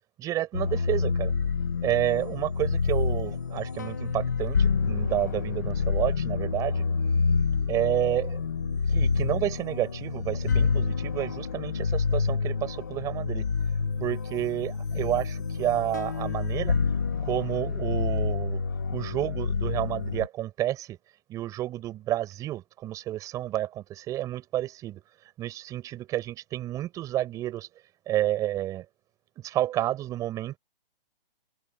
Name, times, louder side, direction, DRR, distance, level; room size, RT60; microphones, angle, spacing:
voice 1, 0.2-1.3 1.8-6.8 7.7-8.4 8.9-13.5 14.0-16.8 17.2-18.6 18.9-21.0 21.3-25.0 25.4-27.7 28.1-28.9 29.4-30.6, right 13 dB, 10° right, 5.2 m, -30 dB
sound 1, 0.5-20.3, left 5 dB, 20° left, 0.6 m, -28 dB
hypercardioid pair, 175°, 30 cm